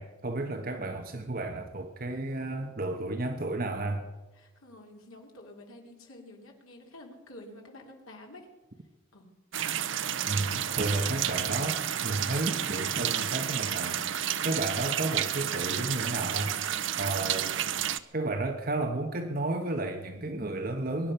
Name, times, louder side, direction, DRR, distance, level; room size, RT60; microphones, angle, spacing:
voice 1, 0.0-4.0 10.3-16.6 17.0-17.6 18.1-21.1, right 2 dB, 45° right, 1.1 m, -32 dB
voice 2, 4.4-8.5 9.1-9.3, left 1 dB, 90° left, 3.4 m, -49 dB
sound 1, 9.5-18.0, right 10 dB, 65° right, 0.7 m, -31 dB
23.0 x 10.5 x 5.7 m
head